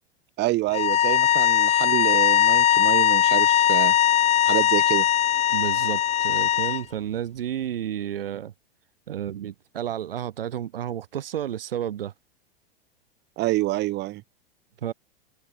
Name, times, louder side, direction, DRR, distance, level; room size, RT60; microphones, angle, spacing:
voice 1, 0.4-4.0 4.4-5.1 13.4-14.2, right 18 dB, 35° right, 1.4 m, -27 dB
sound 1, 0.7-6.8, left 10 dB, 20° left, 0.8 m, -20 dB
voice 2, 5.5-8.5 9.1-12.1 14.8-14.9, right 10 dB, 70° right, 6.9 m, -31 dB
figure-of-eight pair, 95°, 30 cm